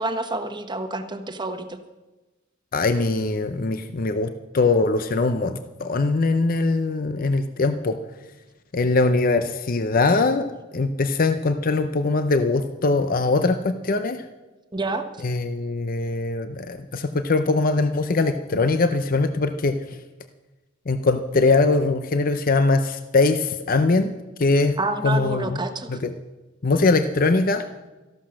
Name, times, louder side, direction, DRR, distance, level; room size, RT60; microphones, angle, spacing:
voice 1, 0.0-1.8 14.7-15.1 24.8-26.0, right 2 dB, 20° right, 8 dB, 1.1 m, -28 dB
voice 2, 2.7-8.0 8.7-14.2 15.2-19.8 20.9-24.1 24.4-24.8 25.0-25.6 25.9-26.1 26.6-27.6, left 3 dB, 45° left, 9 dB, 0.6 m, -22 dB
14.0 x 12.0 x 6.4 m, 1.1 s
head